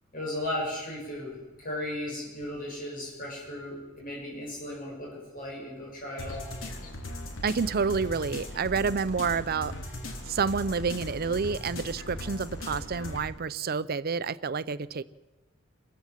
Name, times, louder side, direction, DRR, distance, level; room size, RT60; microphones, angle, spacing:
voice 1, 0.1-6.5, left 1 dB, 45° left, 7.7 m, -36 dB
sound 1, 6.2-13.2, left 1 dB, 75° left, 3.4 m, -38 dB
voice 2, 7.4-9.7 10.3-15.0, right 5 dB, 50° right, 0.6 m, -29 dB
27.0 x 15.0 x 7.4 m
head